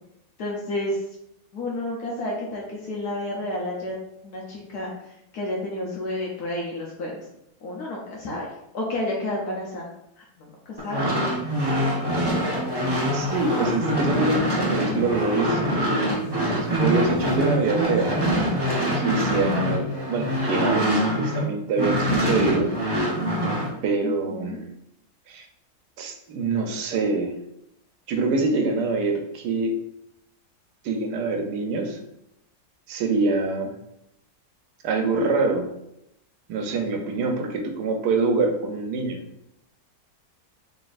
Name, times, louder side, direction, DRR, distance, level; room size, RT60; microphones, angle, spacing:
voice 1, 0.4-1.0 1.5-4.0 4.2-4.9 5.3-7.2 7.6-8.5 8.7-9.9 10.2-11.0 24.0-24.6, left 1 dB, 75° left, -3 dB, 1.3 m, -30 dB
sound 1, 10.8-21.4 21.8-23.7, equal, 20° right, 0.7 m, -24 dB
voice 2, 13.1-16.2 16.6-18.2 18.9-22.7 23.8-24.6 25.3-25.5 26.0-27.3 28.1-29.7 30.8-32.0 32.9-33.8 34.8-35.7 36.5-39.2, right 3 dB, 90° right, 4 dB, 1.2 m, -25 dB
4.0 x 3.5 x 2.5 m, 0.81 s
omnidirectional pair, 1.7 m